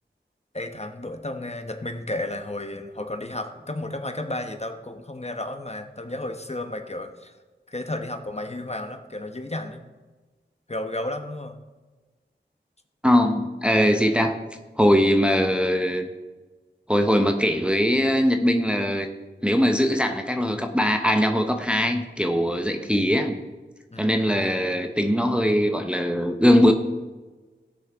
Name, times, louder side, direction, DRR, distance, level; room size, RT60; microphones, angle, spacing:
voice 1, 0.5-7.3 7.7-9.8 10.7-11.6 23.9-24.3, left 1 dB, 35° left, 5 dB, 0.9 m, -33 dB
voice 2, 13.0-14.4 14.8-16.1 16.9-19.1 19.4-23.4 24.0-26.7, equal, 5° right, 5 dB, 0.8 m, -21 dB
18.0 x 6.4 x 3.5 m, 1.2 s
wide cardioid pair, 50°, 20 cm